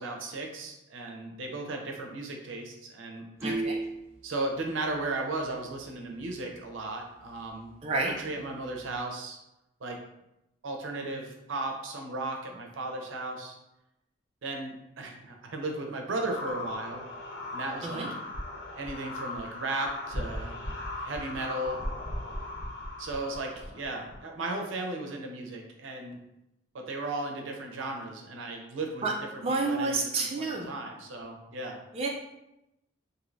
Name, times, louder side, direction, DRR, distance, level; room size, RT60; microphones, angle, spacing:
voice 1, 0.0-3.3 4.2-7.7 8.0-9.4 9.8-10.0 10.6-13.6 14.4-17.1 17.5-18.1 18.8-20.6 21.0-21.8 23.0-26.2 26.7-29.0 29.3-31.8, right 2 dB, 85° right, 2 dB, 0.6 m, -35 dB
sound 1, 3.4-4.2 5.9-6.0 6.2-6.3 6.8-6.9 7.3-7.4 8.2-9.0, right 2 dB, 15° right, 0.9 m, -33 dB
voice 2, 3.4-3.8 7.8-8.1 17.8-18.1 29.0-29.1 29.4-30.7 31.9-32.1, right 3 dB, 30° right, -1 dB, 0.3 m, -29 dB
sound 2, 16.2-24.3, left 1 dB, 65° left, 0.6 m, -38 dB
3.1 x 2.6 x 2.6 m, 0.88 s
head